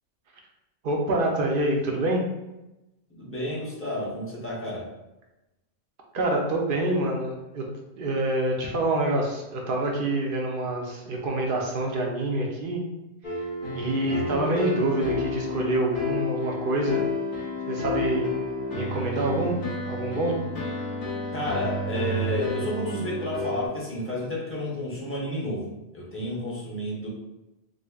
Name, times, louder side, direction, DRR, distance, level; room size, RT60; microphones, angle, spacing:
voice 1, 0.8-2.3 6.1-7.7 8.0-12.8 13.7-17.0 17.7-18.3 18.7-19.6 19.9-20.4, right 1 dB, 55° right, 0 dB, 0.6 m, -26 dB
voice 2, 3.1-4.9 13.7-14.2 21.3-27.1, left 1 dB, 15° left, -5 dB, 0.7 m, -31 dB
sound 1, 13.2-23.7, left 2 dB, 50° left, 0.8 m, -31 dB
5.1 x 2.0 x 2.3 m, 0.97 s
omnidirectional pair, 1.3 m